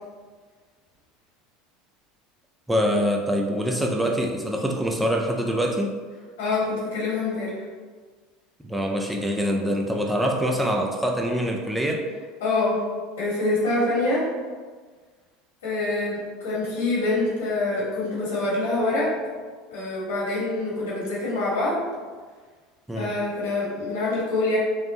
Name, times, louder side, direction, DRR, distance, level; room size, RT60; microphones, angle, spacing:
voice 1, 2.7-6.0 8.6-12.0 22.9-23.1, equal, 5° right, 1 dB, 0.4 m, -24 dB
voice 2, 6.4-7.6 12.4-12.8 13.2-14.3 15.6-19.1 19.7-21.8 22.9-24.6, left 2 dB, 85° left, -6 dB, 1.5 m, -25 dB
3.5 x 2.0 x 3.9 m, 1.5 s
hypercardioid pair, 90°, 0 cm